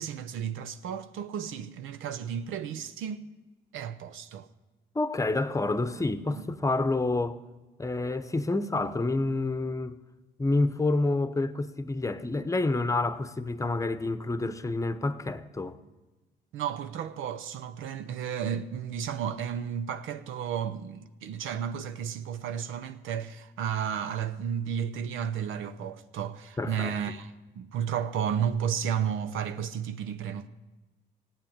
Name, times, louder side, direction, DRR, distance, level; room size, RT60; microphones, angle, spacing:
voice 1, 0.0-3.3 3.7-4.5 6.3-6.4 16.5-30.5, right 8 dB, 85° right, 0.7 m, -33 dB
voice 2, 4.9-7.4 7.8-10.0 10.4-15.8 26.6-26.9, left 2 dB, 15° left, 0.8 m, -28 dB
16.0 x 8.8 x 8.8 m
cardioid pair, 90°, 20 cm